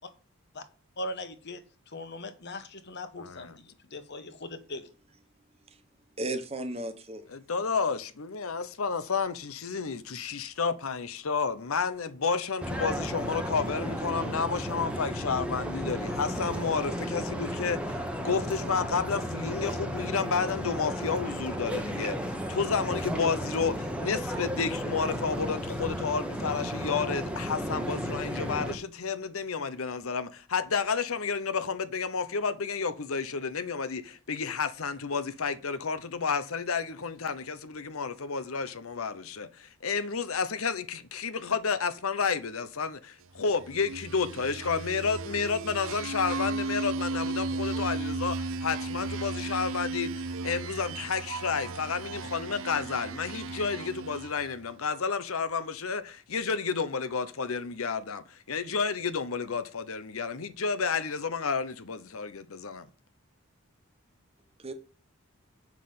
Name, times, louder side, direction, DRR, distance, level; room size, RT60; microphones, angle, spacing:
voice 1, 1.0-4.9, left 1 dB, 50° left, 1.3 m, -40 dB
voice 2, 3.2-3.5 7.3-62.9, left 5 dB, 75° left, 0.8 m, -31 dB
voice 3, 6.2-7.2 64.6-64.7, right 1 dB, 30° right, 1.3 m, -35 dB
sound 1, 12.6-28.8, equal, 5° right, 1.1 m, -33 dB
sound 2, 43.6-54.5, right 3 dB, 65° right, 0.5 m, -35 dB
7.5 x 6.0 x 7.0 m
head